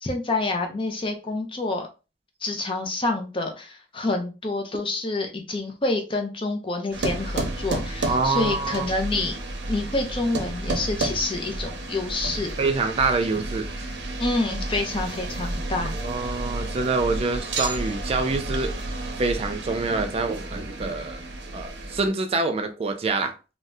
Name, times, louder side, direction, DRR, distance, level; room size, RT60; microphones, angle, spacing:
voice 1, 0.0-1.9 2.4-9.4 9.7-12.5 14.2-16.0, left 2 dB, 30° left, 0.6 m, -27 dB
sound 1, 6.9-22.1, right 2 dB, 80° right, 0.6 m, -31 dB
voice 2, 8.1-8.9 12.6-13.7 15.9-18.7 19.2-21.2 21.5-23.3, right 3 dB, 35° right, 0.3 m, -26 dB
2.6 x 2.1 x 3.4 m
head